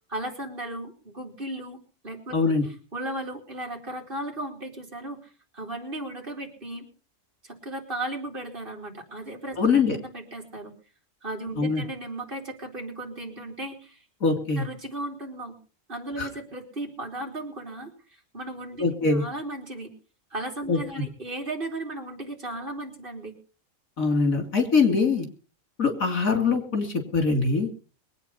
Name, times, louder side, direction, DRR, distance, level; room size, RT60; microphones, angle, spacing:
voice 1, 0.1-2.4 2.6-6.9 7.4-9.6 9.9-10.7 11.2-14.0 14.3-15.6 15.9-19.9 20.3-23.4, right 1 dB, 40° right, 1 dB, 3.6 m, -36 dB
voice 2, 2.3-2.6 9.6-10.0 11.6-11.8 14.2-14.6 16.2-16.3 18.8-19.2 20.7-20.8 24.0-25.3 25.8-27.7, left 4 dB, 85° left, 5 dB, 3.4 m, -23 dB
22.0 x 9.0 x 5.6 m, 0.38 s
omnidirectional pair, 1.4 m